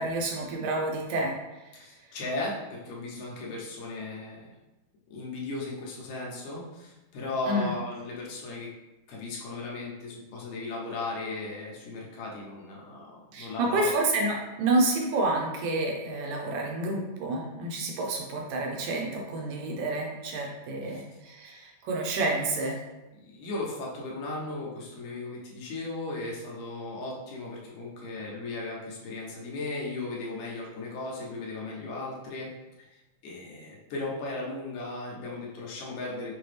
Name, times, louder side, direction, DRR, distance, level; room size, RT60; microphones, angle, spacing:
voice 1, 0.0-1.4 7.5-7.7 13.3-22.8, right 2 dB, 75° right, 0 dB, 1.9 m, -29 dB
voice 2, 1.7-4.6 5.1-8.7 9.1-13.9 20.8-21.0 23.1-32.5 32.8-36.3, left 2 dB, 70° left, -3 dB, 2.2 m, -36 dB
5.8 x 2.3 x 3.3 m, 1.0 s
omnidirectional pair, 3.5 m